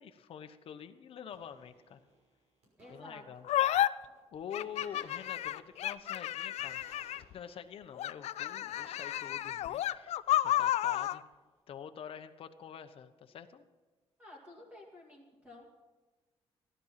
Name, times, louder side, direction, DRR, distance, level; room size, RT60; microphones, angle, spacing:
voice 1, 0.0-2.0 2.9-3.5 4.3-6.8 7.3-10.2 10.4-11.2 11.7-13.7, left 8 dB, 60° left, 8 dB, 1.0 m, -46 dB
sound 1, 1.3-3.7 3.9-4.3 4.6-10.6 11.4-11.5, right 1 dB, 80° right, 6.2 m, -60 dB
voice 2, 2.8-3.3 14.2-15.7, left 1 dB, 15° right, -4 dB, 2.6 m, -52 dB
sound 2, 3.5-3.9 4.5-7.3 8.0-11.2, left 13 dB, 85° left, 0.5 m, -31 dB
15.5 x 12.5 x 5.8 m, 1.3 s
cardioid pair, 150°, 11 cm